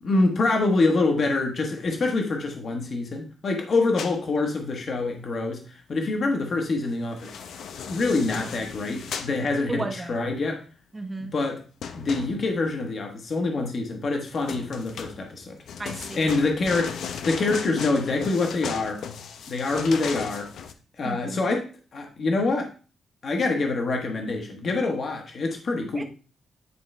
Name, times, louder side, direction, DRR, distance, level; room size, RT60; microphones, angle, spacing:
voice 1, 0.0-7.3 7.9-10.6 11.2-11.6 11.9-15.6 16.1-17.0 17.2-19.0 19.5-20.5 21.0-22.7 23.2-26.0, left 3 dB, 40° left, 3 dB, 1.3 m, -25 dB
sound 1, 4.0-4.2 7.0-9.4 11.8-12.7 14.3-20.7, left 7 dB, 70° left, 0.7 m, -36 dB
voice 2, 9.7-10.2 10.9-11.3 15.8-16.3 21.0-21.4 25.9-26.0, right 2 dB, 15° right, 5 dB, 0.8 m, -33 dB
9.8 x 4.8 x 3.3 m, 0.36 s
wide cardioid pair, 170°, 0 cm